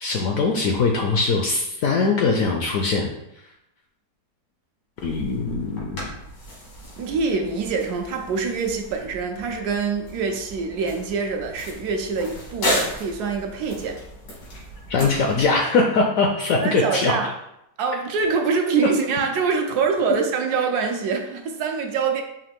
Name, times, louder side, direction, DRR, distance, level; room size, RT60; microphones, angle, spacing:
voice 1, 0.0-3.1 5.0-6.1 14.9-17.1, left 4 dB, 70° left, 2 dB, 0.8 m, -21 dB
sound 1, 5.0-15.5, left 1 dB, 90° left, 2.2 m, -34 dB
voice 2, 7.0-14.0 16.6-17.3 17.8-22.2, right 5 dB, 75° right, 4 dB, 1.0 m, -25 dB
4.7 x 2.9 x 3.5 m, 0.81 s
omnidirectional pair, 1.9 m